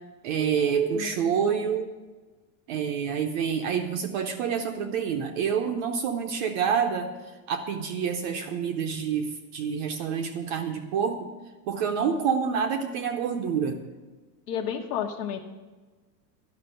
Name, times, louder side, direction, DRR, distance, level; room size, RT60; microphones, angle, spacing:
voice 1, 0.2-1.9 2.7-7.1 7.5-11.3 11.7-13.8, right 7 dB, 30° right, 5 dB, 0.5 m, -27 dB
voice 2, 0.9-1.7 14.5-15.4, left 8 dB, 75° left, 2 dB, 1.3 m, -32 dB
11.5 x 5.9 x 8.8 m, 1.3 s
supercardioid pair, 170°, 48 cm